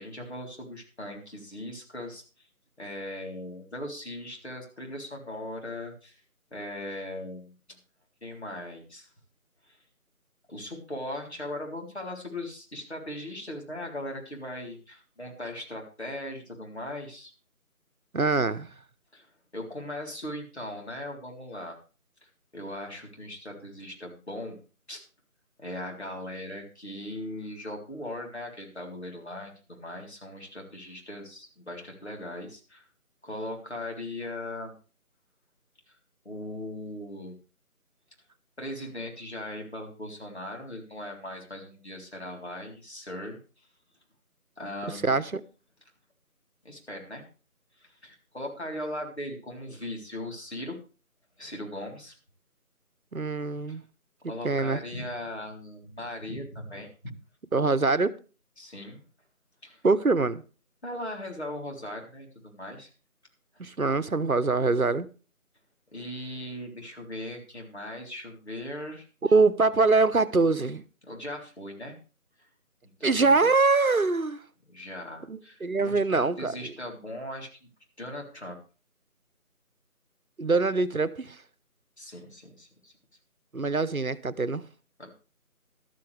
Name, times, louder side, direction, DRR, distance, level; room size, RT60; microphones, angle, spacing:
voice 1, 0.0-2.2 2.8-6.2 6.5-7.5 8.2-9.1 9.7-9.8 10.5-17.3 19.1-21.8 22.5-24.6 24.9-25.0 25.6-32.8 33.2-34.7 36.3-37.4 38.6-43.4 44.6-45.2 46.6-47.2 47.8-50.8 51.4-52.1 53.7-53.8 54.3-57.1 58.6-59.0 59.6-59.8 60.8-62.9 65.9-69.1 71.1-72.0 73.0-73.5 74.7-77.5 78.0-78.6 82.0-82.9 85.0-85.1, left 1 dB, 45° left, 3.7 m, -39 dB
voice 2, 18.1-18.7 45.0-45.4 53.1-53.8 54.4-54.8 57.5-58.2 59.8-60.4 63.6-65.1 69.2-70.8 73.0-74.4 75.3-76.7 80.4-81.4 83.5-84.6, right 3 dB, 70° right, 1.1 m, -24 dB
13.0 x 13.0 x 3.4 m
figure-of-eight pair, 170°, 44 cm